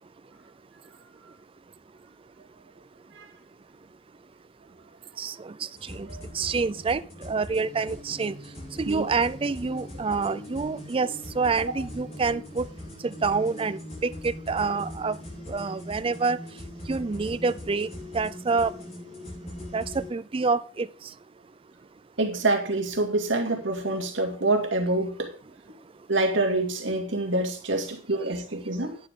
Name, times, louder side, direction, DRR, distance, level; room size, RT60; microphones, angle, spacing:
voice 1, 5.2-5.5 5.9-6.1 6.3-8.4 8.8-11.1 11.4-12.6 13.0-15.2 15.5-16.4 16.9-17.9 18.1-18.7 19.7-20.9, right 4 dB, 30° right, 0.4 m, -27 dB
sound 1, 5.8-20.1, left 1 dB, 35° left, 5.6 m, -41 dB
voice 2, 22.2-25.3 26.1-29.0, right 2 dB, 75° right, 2.4 m, -26 dB
11.0 x 9.4 x 3.7 m
head